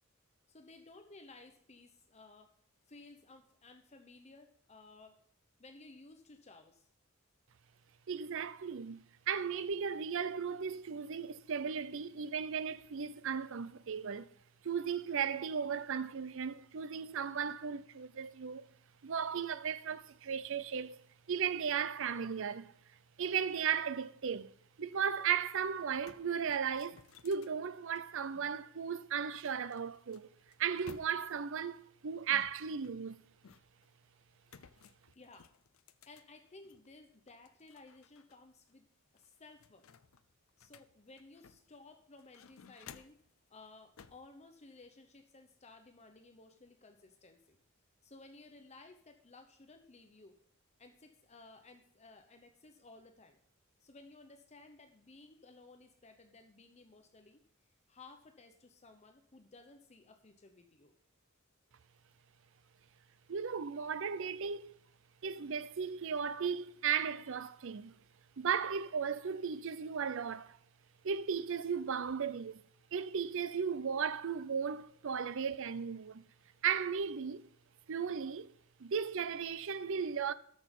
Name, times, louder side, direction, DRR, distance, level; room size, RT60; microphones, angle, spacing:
voice 1, 0.5-2.5 2.9-5.2 5.6-6.9 35.1-35.5 36.1-38.9 39.1-39.9 40.6-43.2 43.5-47.6 48.0-50.4 50.8-53.4 53.8-57.4 57.9-60.9, left 3 dB, 30° left, 0.9 m, -57 dB
voice 2, 8.1-14.3 14.6-18.7 19.0-22.7 23.2-24.5 24.8-30.3 30.6-33.2 63.3-64.7 65.2-67.9 68.4-70.6 71.0-72.6 72.9-76.2 76.6-77.5 77.9-78.5 78.8-80.3, right 7 dB, 70° right, 0.5 m, -36 dB
sound 1, 25.5-25.6 25.8-28.6 29.5-31.5 32.3-33.9 34.5-36.9 37.3-38.4 38.7-38.8 39.2-41.8 42.2-43.3 44.0-44.3, left 6 dB, 80° left, 0.6 m, -58 dB
13.0 x 6.2 x 5.3 m
head